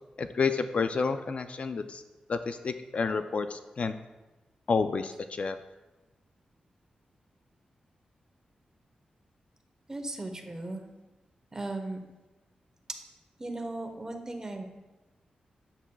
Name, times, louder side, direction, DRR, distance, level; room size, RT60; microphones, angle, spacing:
voice 1, 0.2-2.0 2.3-3.9 4.7-5.6, left 4 dB, 55° left, 9 dB, 0.3 m, -30 dB
voice 2, 9.9-10.8 11.5-12.0 13.4-14.6, right 2 dB, 25° right, 4 dB, 0.9 m, -37 dB
8.1 x 7.1 x 2.3 m, 1.1 s
cardioid pair, 85°, 3 cm